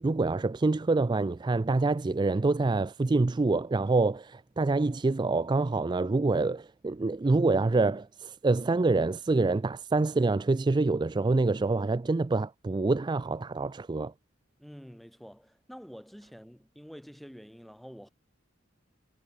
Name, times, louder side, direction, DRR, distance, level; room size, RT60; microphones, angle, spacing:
voice 1, 0.0-14.1, right 3 dB, 20° right, 0.3 m, -26 dB
voice 2, 14.6-18.1, equal, ahead, 1.3 m, -48 dB
head